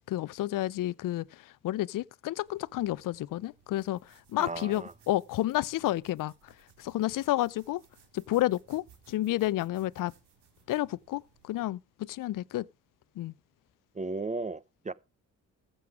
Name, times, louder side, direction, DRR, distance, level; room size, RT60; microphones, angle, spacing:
voice 1, 0.1-6.5 6.8-7.8 8.1-10.1 10.7-12.7 13.2-13.3, left 15 dB, 50° left, 0.5 m, -31 dB
sound 1, 2.5-11.7, right 7 dB, 70° right, 2.2 m, -63 dB
voice 2, 4.4-4.9 13.9-14.9, right 3 dB, 15° right, 0.7 m, -35 dB
15.0 x 7.7 x 4.8 m
hypercardioid pair, 45°, 42 cm